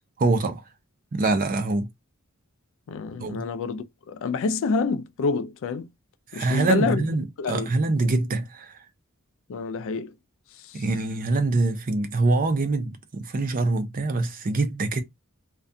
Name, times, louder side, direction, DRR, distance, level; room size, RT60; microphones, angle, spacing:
voice 1, 0.2-0.6 1.1-1.9 3.2-3.4 6.3-8.8 10.7-15.0, right 3 dB, 40° right, 0.5 m, -24 dB
voice 2, 2.9-5.9 6.3-7.0 7.4-7.7 9.5-10.1, left 4 dB, 60° left, 0.3 m, -27 dB
2.4 x 2.2 x 2.6 m
head